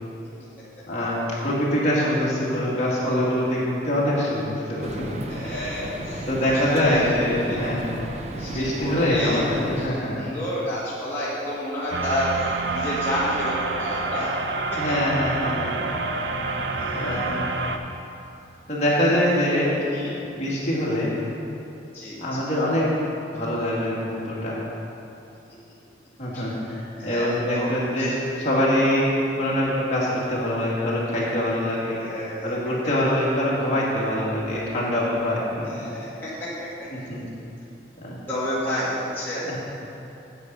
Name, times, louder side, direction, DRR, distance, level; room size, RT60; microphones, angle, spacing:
voice 1, 0.9-1.2 1.4-5.2 6.3-7.8 8.5-10.2 14.7-15.9 16.2-16.5 16.9-17.5 18.7-19.7 20.2-21.1 22.2-22.9 23.3-24.6 26.2-29.1 29.4-32.1 32.4-35.8 36.9-37.2 38.0-38.2 38.7-38.8 39.5-39.6, left 1 dB, 35° left, -7 dB, 2.2 m, -24 dB
sound 1, 4.8-9.9, right 1 dB, 35° right, 0.6 m, -35 dB
voice 2, 5.3-7.1 7.4-7.8 8.3-9.4 9.8-9.9 10.2-14.3 14.7-14.8 16.7-17.4 19.7-20.1 21.9-22.4 26.3-26.4 26.9-27.3 27.5-28.4 31.9-32.5 35.6-36.9 38.3-39.6, left 1 dB, 10° left, -11 dB, 1.7 m, -30 dB
sound 2, 11.9-17.8, right 3 dB, 80° right, 0.6 m, -28 dB
9.0 x 8.1 x 5.6 m, 2.9 s
head